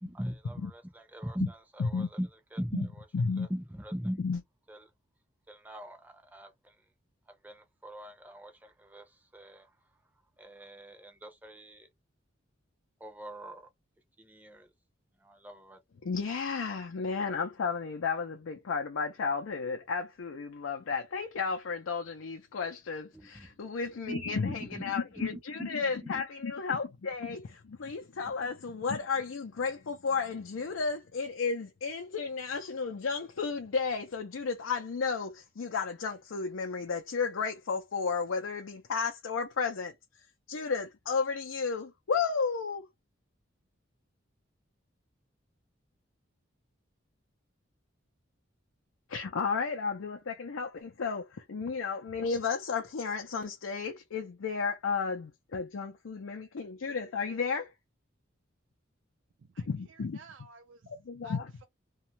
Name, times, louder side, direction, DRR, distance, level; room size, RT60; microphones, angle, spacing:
voice 1, 0.0-3.0 3.4-4.3 4.7-4.9 5.5-6.8 7.3-9.7 10.4-11.9 13.0-13.7 14.2-14.7 15.2-15.8 23.1-23.6 23.8-24.9 25.3-25.7 26.0-26.2 28.2-28.3, equal, 10° right, 0.5 m, -41 dB
voice 2, 3.1-3.5 4.2-4.4 16.0-39.9 40.5-42.9 49.1-57.7 59.7-60.2 60.9-61.5, left 5 dB, 85° left, 0.5 m, -33 dB
voice 3, 59.5-60.8 61.2-61.6, right 5 dB, 65° right, 0.4 m, -54 dB
2.6 x 2.3 x 2.9 m
head